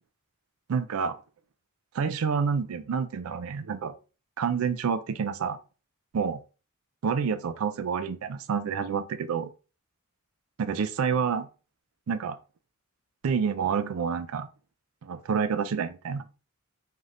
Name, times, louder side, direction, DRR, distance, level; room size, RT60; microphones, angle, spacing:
voice 1, 0.7-1.2 1.9-3.9 4.4-5.6 6.1-6.4 7.0-9.5 10.6-11.5 12.1-12.4 13.2-14.5 15.0-16.2, right 6 dB, 80° right, 0.4 m, -28 dB
3.7 x 2.7 x 3.2 m
head